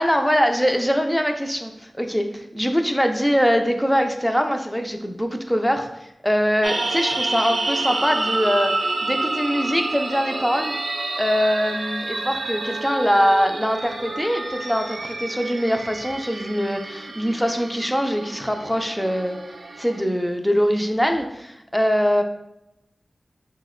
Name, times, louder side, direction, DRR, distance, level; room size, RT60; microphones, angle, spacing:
voice 1, 0.0-5.9 6.2-10.8 11.2-19.4 19.8-22.2, equal, 5° left, 4 dB, 0.4 m, -22 dB
sound 1, 6.6-20.0, right 2 dB, 85° right, 0.3 m, -29 dB
5.9 x 2.1 x 2.4 m, 0.85 s
wide cardioid pair, 85°, 0 cm